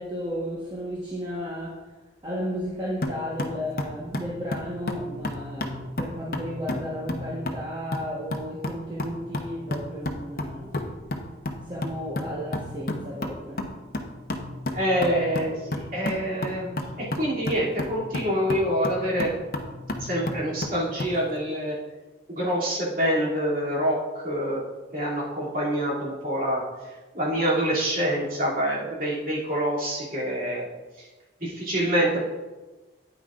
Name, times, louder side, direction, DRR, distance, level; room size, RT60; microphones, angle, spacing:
voice 1, 0.0-1.7 2.2-10.7 11.7-13.6, equal, 25° right, -6 dB, 1.3 m, -33 dB
sound 1, 3.0-21.2, left 1 dB, 55° left, 0.8 m, -33 dB
voice 2, 14.7-19.3 20.0-21.7 22.3-24.0 24.2-24.6 24.9-26.6 27.1-30.7 31.4-32.2, equal, 50° right, -6 dB, 2.8 m, -26 dB
9.4 x 9.3 x 2.5 m, 1.2 s
head